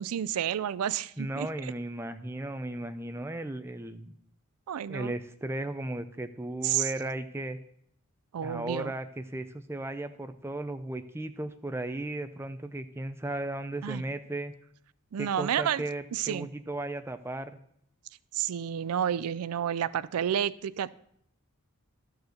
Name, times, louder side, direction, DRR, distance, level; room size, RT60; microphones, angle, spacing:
voice 1, 0.0-1.7 4.7-5.1 6.6-6.9 8.3-8.9 13.8-14.0 15.1-15.8 16.1-16.5 18.3-20.9, right 9 dB, 85° right, 17 dB, 0.4 m, -30 dB
voice 2, 1.2-4.1 4.9-7.6 8.4-14.5 15.2-17.6, right 1 dB, 10° right, 9 dB, 0.4 m, -35 dB
12.5 x 4.7 x 6.4 m, 0.71 s
head